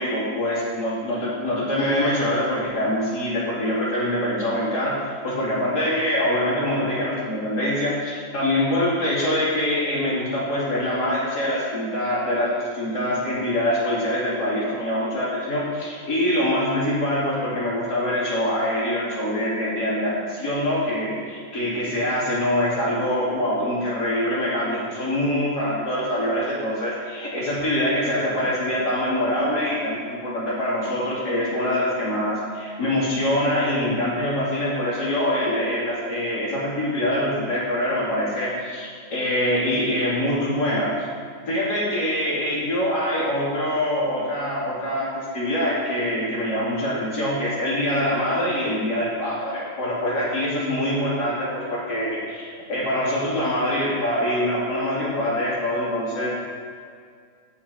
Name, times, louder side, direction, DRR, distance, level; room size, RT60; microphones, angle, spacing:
voice 1, 0.0-40.9 41.5-56.3, left 1 dB, 60° left, -8 dB, 3.4 m, -24 dB
17.5 x 6.6 x 2.8 m, 2.1 s
omnidirectional pair, 2.0 m